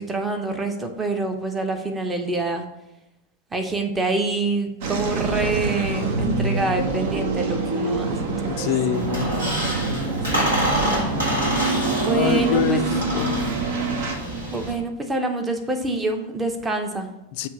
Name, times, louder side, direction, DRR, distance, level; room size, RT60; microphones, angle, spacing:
voice 1, 0.0-2.6 3.5-8.7 10.3-11.1 12.0-12.8 14.5-17.1, right 2 dB, 15° right, 0.8 m, -26 dB
sound 1, 4.8-14.2, right 3 dB, 50° right, 0.8 m, -26 dB
voice 2, 8.5-9.3 12.1-13.6 17.3-17.5, left 10 dB, 50° left, 0.4 m, -25 dB
Squeak, 8.9-14.7, right 1 dB, 70° right, 1.9 m, -27 dB
7.0 x 2.7 x 5.7 m
figure-of-eight pair, 90°, 0 cm